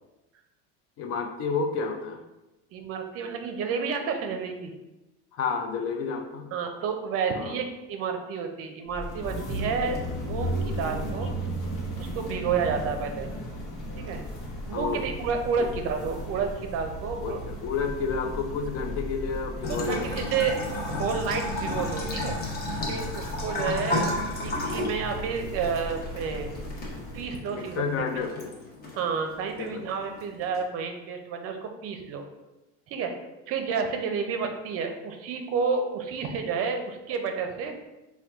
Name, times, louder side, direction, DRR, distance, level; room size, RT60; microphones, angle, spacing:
voice 1, 1.0-2.2 5.3-6.5 7.4-7.6 14.7-15.0 15.6-15.7 17.2-20.3 23.6-23.8 27.5-28.5 29.6-29.8, left 5 dB, 50° left, 5 dB, 0.4 m, -31 dB
voice 2, 2.7-4.7 6.5-11.3 12.0-13.3 14.0-14.2 14.7-17.4 19.7-20.6 20.9-22.4 22.8-26.5 27.1-28.3 29.0-32.2 32.9-33.1 33.5-37.7, right 5 dB, 50° right, 5 dB, 0.5 m, -30 dB
sound 1, 8.9-27.4, equal, 65° left, 1.2 m, -36 dB
Bathtub (filling or washing) / Trickle dribble, 19.6-30.6, left 2 dB, 30° left, 0.8 m, -34 dB
4.3 x 2.3 x 3.5 m, 1.0 s
cardioid pair, 145°, 30 cm